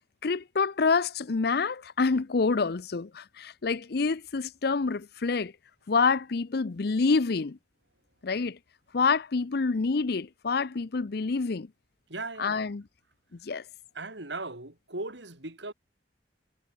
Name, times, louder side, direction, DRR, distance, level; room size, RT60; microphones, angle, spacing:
voice 1, 0.2-5.5 5.9-7.6 8.2-8.6 8.9-11.7 12.4-12.8 13.4-13.6, left 4 dB, 60° left, 0.6 m, -27 dB
voice 2, 12.1-12.7 13.9-15.7, right 2 dB, 85° right, 5.1 m, -38 dB
head